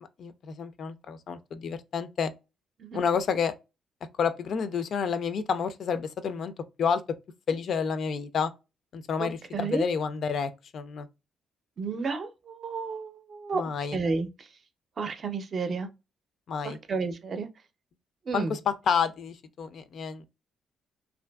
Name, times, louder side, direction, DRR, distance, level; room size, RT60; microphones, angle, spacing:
voice 1, 0.2-2.3 2.9-3.5 4.2-6.5 6.8-7.0 7.5-8.5 8.9-11.1 13.5-14.0 16.5-16.8 18.3-20.2, left 6 dB, 60° left, 0.4 m, -29 dB
voice 2, 9.2-9.9 11.8-13.6 13.9-14.5 15.0-15.9 16.6-17.5 18.3-18.6, right 4 dB, 45° right, 0.5 m, -32 dB
2.6 x 2.5 x 2.2 m
cardioid pair, 90°, 0 cm